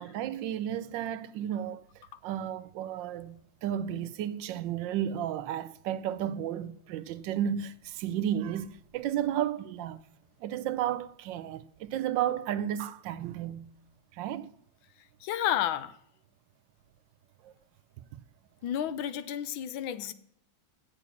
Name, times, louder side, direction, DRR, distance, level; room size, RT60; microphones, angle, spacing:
voice 1, 0.0-1.8 2.2-10.0 10.4-13.7 14.1-14.5 17.4-17.5, right 10 dB, 75° right, 1.2 m, -33 dB
voice 2, 15.2-15.9 18.6-20.1, left 10 dB, 90° left, 1.5 m, -31 dB
8.4 x 7.1 x 7.1 m
omnidirectional pair, 2.1 m